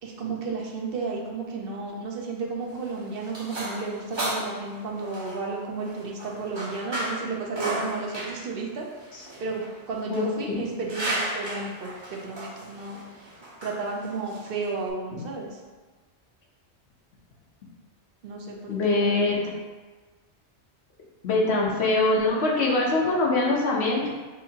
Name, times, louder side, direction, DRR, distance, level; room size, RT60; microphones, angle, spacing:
voice 1, 0.0-8.9 9.2-13.3 13.6-15.6 18.2-19.3, right 4 dB, 55° right, -1 dB, 0.9 m, -33 dB
sound 1, 2.6-14.9, right 1 dB, 25° right, 0.8 m, -35 dB
voice 2, 18.7-19.4 21.2-24.1, left 2 dB, 70° left, -2 dB, 1.1 m, -23 dB
6.3 x 2.7 x 2.8 m, 1.3 s
omnidirectional pair, 1.2 m